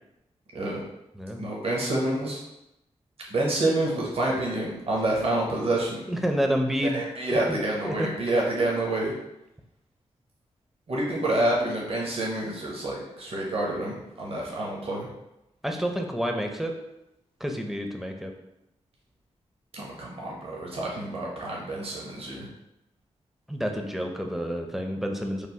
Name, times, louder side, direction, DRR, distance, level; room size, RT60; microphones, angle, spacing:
voice 1, 1.4-2.4 3.3-6.0 6.9-9.1 10.9-15.1 19.7-22.5, right 1 dB, 55° right, -3 dB, 0.7 m, -28 dB
voice 2, 6.1-7.0 7.3-7.6 7.8-8.1 15.6-16.7 17.4-18.3 23.5-25.5, equal, 5° right, 3 dB, 0.4 m, -29 dB
3.1 x 2.0 x 2.7 m, 0.90 s
cardioid pair, 60°, 12 cm